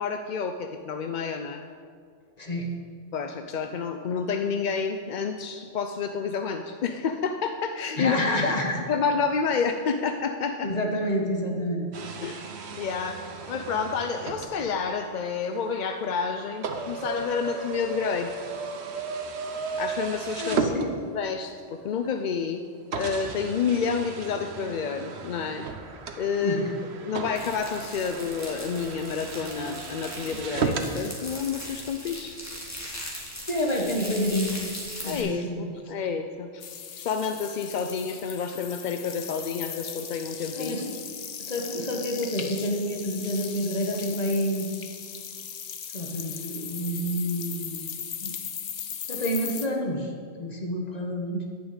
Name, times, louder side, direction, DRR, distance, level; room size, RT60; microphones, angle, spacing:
voice 1, 0.0-1.6 3.1-8.2 8.9-10.7 12.2-12.4 12.8-18.3 19.8-20.6 21.1-22.6 23.0-25.7 26.2-26.6 27.0-32.3 35.0-36.6 37.0-40.8, left 6 dB, 55° left, 6 dB, 0.5 m, -29 dB
voice 2, 2.4-2.7 7.9-8.8 10.6-11.9 20.4-20.9 26.4-26.8 33.5-34.6 35.0-35.7 40.5-40.9 41.4-44.7 45.9-47.9 48.2-48.4 49.1-50.1 50.4-51.4, equal, 35° left, 1 dB, 1.5 m, -28 dB
sound 1, 11.9-21.4 22.1-22.2 22.9-30.9, right 4 dB, 65° right, 1.1 m, -35 dB
sound 2, 27.4-35.2, equal, 15° left, 2.2 m, -39 dB
sound 3, 36.6-49.7, left 8 dB, 80° left, 1.2 m, -38 dB
10.5 x 6.1 x 8.8 m, 2.1 s
omnidirectional pair, 1.2 m